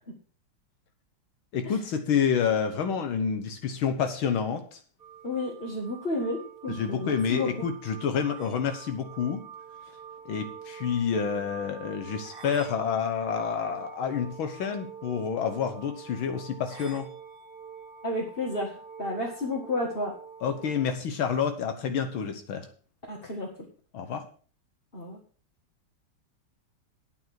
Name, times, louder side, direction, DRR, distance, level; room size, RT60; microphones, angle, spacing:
voice 1, 1.5-4.8 6.7-9.4 10.3-17.1 20.4-22.7 23.9-24.3, left 7 dB, 75° left, 7 dB, 1.9 m, -28 dB
sound 1, 5.0-20.9, right 6 dB, 40° right, 0.9 m, -45 dB
voice 2, 5.2-7.5 18.0-20.1 23.1-23.5 24.9-25.2, left 2 dB, 25° left, -3 dB, 1.9 m, -31 dB
9.4 x 7.9 x 6.2 m, 0.41 s
omnidirectional pair, 2.3 m